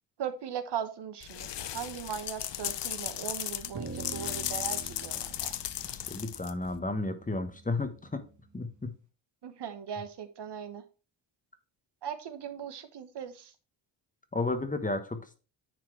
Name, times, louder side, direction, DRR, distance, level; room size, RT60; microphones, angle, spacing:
voice 1, 0.2-5.5 9.4-10.8 12.0-13.5, right 8 dB, 55° right, 9 dB, 1.2 m, -39 dB
sound 1, 1.2-6.8, left 12 dB, 60° left, 0.8 m, -36 dB
sound 2, 3.7-8.3, right 4 dB, 35° right, 1.5 m, -45 dB
voice 2, 5.9-8.2 8.5-8.9 14.3-15.4, left 2 dB, 15° left, 9 dB, 1.2 m, -33 dB
10.0 x 4.5 x 4.5 m, 0.33 s
cardioid pair, 100°, 49 cm